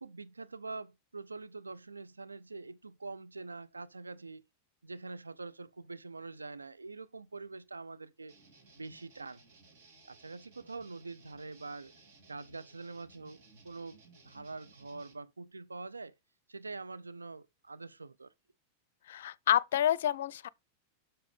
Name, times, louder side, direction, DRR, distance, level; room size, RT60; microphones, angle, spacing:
voice 1, 0.0-4.4 4.8-8.4 8.8-9.4 10.1-11.9 12.3-14.0 14.2-16.2 16.5-18.3, right 3 dB, 80° right, 0.5 m, -45 dB
sound 1, 8.3-15.1, right 3 dB, 50° right, 2.9 m, -60 dB
voice 2, 19.1-20.5, left 11 dB, 60° left, 0.4 m, -28 dB
7.4 x 6.1 x 5.1 m
figure-of-eight pair, 90°, 0 cm